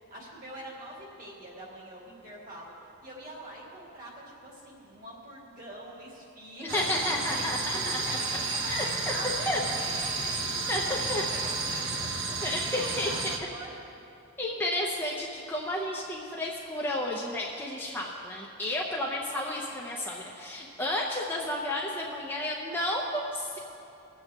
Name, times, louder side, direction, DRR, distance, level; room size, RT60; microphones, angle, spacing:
voice 1, 0.1-13.8 14.4-14.5, right 1 dB, 40° right, -4 dB, 2.7 m, -44 dB
voice 2, 6.6-8.2 8.7-8.8 9.5-9.6 10.7-11.2 12.4-13.1 14.4-23.6, left 1 dB, 10° left, -3 dB, 0.8 m, -32 dB
sound 1, 6.7-13.4, right 3 dB, 60° right, 1.1 m, -32 dB
21.5 x 8.2 x 3.6 m, 2.7 s
head